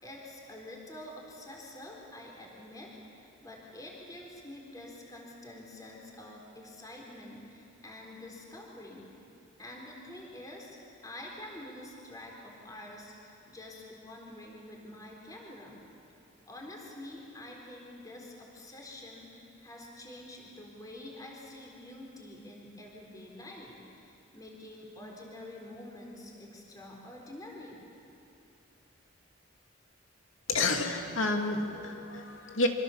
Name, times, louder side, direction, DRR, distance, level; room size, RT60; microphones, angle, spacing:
voice 1, 0.0-9.1 9.6-10.8 11.0-15.8 16.5-27.8, left 1 dB, 20° left, -1 dB, 4.0 m, -47 dB
voice 2, 30.5-32.7, left 2 dB, 80° left, 3 dB, 2.5 m, -30 dB
26.5 x 25.5 x 7.2 m, 2.7 s
head